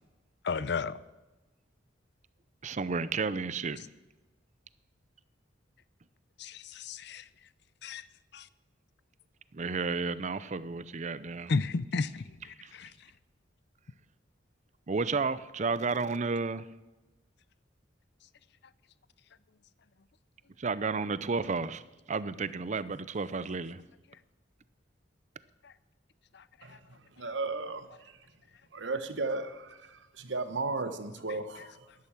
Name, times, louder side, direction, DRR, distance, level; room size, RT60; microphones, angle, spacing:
voice 1, 0.4-0.9 6.4-7.2 7.8-8.0 8.3-8.4 11.5-12.9, left 4 dB, 65° left, 0.6 m, -33 dB
voice 2, 2.6-3.8 9.5-11.5 12.6-12.7 14.9-16.6 20.6-21.8 22.1-23.8, right 4 dB, 40° right, 0.6 m, -32 dB
voice 3, 26.6-28.2 28.7-31.9, right 3 dB, 75° right, 1.1 m, -35 dB
11.5 x 11.5 x 7.4 m
head